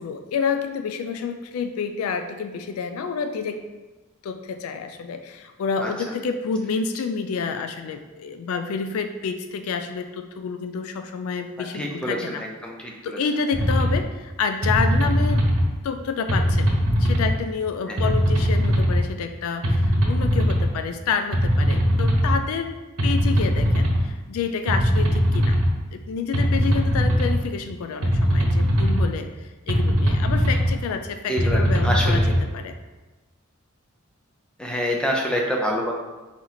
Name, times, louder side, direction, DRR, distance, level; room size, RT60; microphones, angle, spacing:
voice 1, 0.0-3.6 4.2-12.4 13.0-15.5 15.8-16.7 17.0-22.7 23.0-25.6 25.9-32.8, left 5 dB, 85° left, 8 dB, 0.3 m, -29 dB
voice 2, 11.7-13.2 17.9-18.1 31.3-32.3 34.6-35.9, equal, 5° left, -1 dB, 0.5 m, -27 dB
sound 1, 13.5-14.0 14.6-15.7 16.3-17.3 18.0-19.0 19.6-20.7 21.3-22.4 23.0-24.0 24.7-25.7 26.3-27.4 28.0-29.1 29.7-30.7 31.4-32.4, equal, 85° right, 0.9 m, -20 dB
4.2 x 3.0 x 3.9 m, 1.2 s
head